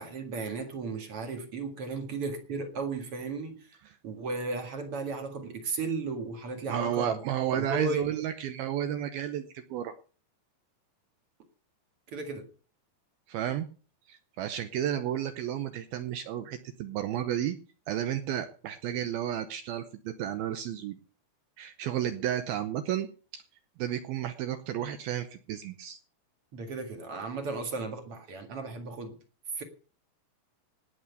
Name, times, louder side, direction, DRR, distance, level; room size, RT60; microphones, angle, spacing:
voice 1, 0.0-3.6 4.0-7.2 7.5-8.1 12.1-12.5 26.5-29.2 29.6-29.7, right 3 dB, 45° right, 2.1 m, -35 dB
voice 2, 6.7-9.9 13.3-13.7 14.1-17.6 17.9-21.0 21.6-23.1 23.3-23.4 23.8-26.0, right 10 dB, 75° right, 2.4 m, -32 dB
18.0 x 6.2 x 8.2 m
omnidirectional pair, 5.1 m